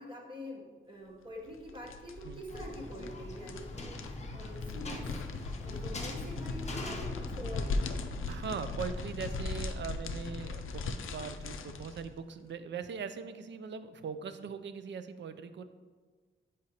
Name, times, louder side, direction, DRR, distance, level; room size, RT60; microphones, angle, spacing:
voice 1, 0.0-5.2 5.6-7.7, equal, 25° right, 0 dB, 0.9 m, -45 dB
sound 1, 1.5-12.1, left 3 dB, 90° left, 0.4 m, -38 dB
sound 2, 2.5-8.1, left 2 dB, 35° left, 0.6 m, -43 dB
voice 2, 8.3-15.6, right 6 dB, 65° right, 10 dB, 0.4 m, -40 dB
7.8 x 5.0 x 2.8 m, 1.5 s
wide cardioid pair, 165°, 20 cm